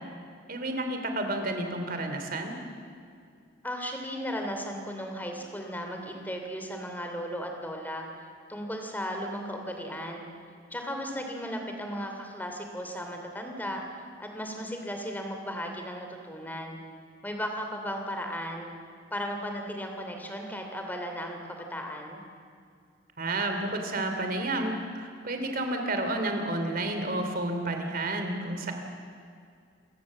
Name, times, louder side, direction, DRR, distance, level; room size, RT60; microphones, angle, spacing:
voice 1, 0.5-2.6 23.2-28.7, right 2 dB, 50° right, 5 dB, 2.9 m, -31 dB
voice 2, 3.6-8.1 8.5-10.3 10.7-13.8 14.2-16.8 17.2-18.7 19.1-22.2, equal, 10° left, 3 dB, 2.9 m, -35 dB
28.0 x 16.0 x 7.5 m, 2.3 s
head